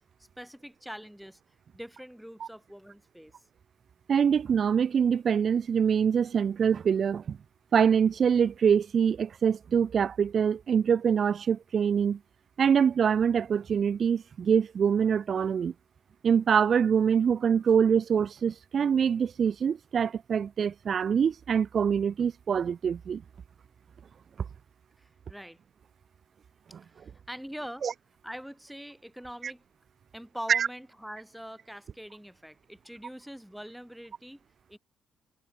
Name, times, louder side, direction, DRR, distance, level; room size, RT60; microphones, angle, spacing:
voice 1, 0.4-1.4 1.7-3.4 25.0-25.6 26.9-27.9 28.2-29.6 30.1-34.4 34.7-34.8, equal, ahead, 1.7 m, -43 dB
voice 2, 4.1-7.4 7.7-12.2 12.6-15.7 16.2-23.2 27.8-27.9 29.4-29.5 30.5-30.7, right 7 dB, 40° right, 0.3 m, -24 dB
cardioid pair, 140°, 0 cm